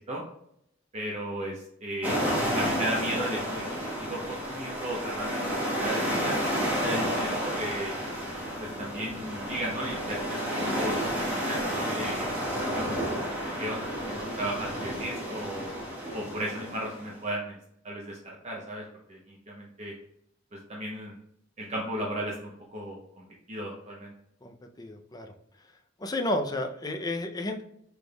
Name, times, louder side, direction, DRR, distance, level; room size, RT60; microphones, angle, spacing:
voice 1, 0.9-2.2 2.5-3.6 4.0-7.9 8.6-12.3 12.7-13.2 13.6-15.7 16.1-17.6 17.8-18.8 19.1-19.9 20.5-21.1 21.6-24.1, right 1 dB, 35° right, -3 dB, 0.8 m, -35 dB
sound 1, 2.0-17.1, equal, 10° right, 1.3 m, -31 dB
voice 2, 24.4-25.3 26.0-27.6, left 1 dB, 20° left, 5 dB, 0.5 m, -32 dB
6.1 x 3.4 x 2.3 m, 0.76 s
head